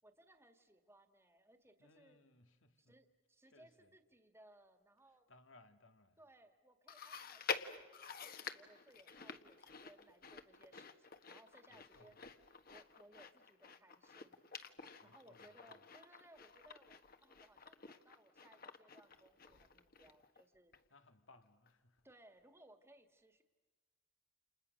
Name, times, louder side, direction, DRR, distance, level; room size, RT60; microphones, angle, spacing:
voice 1, 0.0-2.2 2.8-5.3 6.2-12.2 12.7-14.4 15.0-20.7 22.0-23.4, right 1 dB, 15° right, 1.8 m, -65 dB
voice 2, 1.8-3.0 3.5-3.9 5.3-6.2 11.7-12.2 15.0-15.8 20.9-22.1, left 2 dB, 90° left, 1.9 m, -66 dB
Chewing mastication, 6.9-20.4 20.7-20.8 21.7-21.8, left 5 dB, 50° left, 1.5 m, -49 dB
30.0 x 29.0 x 6.5 m
head